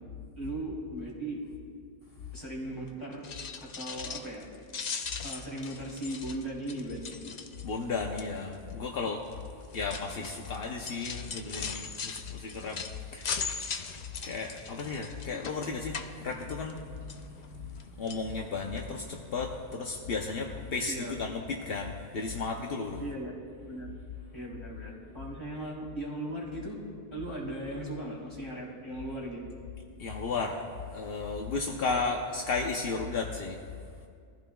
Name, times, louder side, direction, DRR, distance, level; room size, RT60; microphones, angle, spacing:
voice 1, 0.3-1.4 2.3-3.3 3.6-4.4 5.2-7.1 10.2-10.3 15.3-15.4 20.9-21.2 23.0-23.3 23.7-23.9 24.3-26.8 27.1-29.4 31.8-32.0, right 1 dB, 25° left, -5 dB, 3.1 m, -38 dB
metal chains and box movement banging, 3.1-4.4 4.7-7.8 8.2-8.5 9.3-16.8 17.1-17.8 18.1-18.3 18.8-18.9 19.1-19.2, left 5 dB, 50° left, 0.7 m, -39 dB
voice 2, 7.6-9.2 9.7-13.9 14.2-23.0 30.0-33.6, left 4 dB, 70° left, 1 dB, 1.0 m, -34 dB
21.5 x 15.0 x 2.3 m, 2.2 s
omnidirectional pair, 1.0 m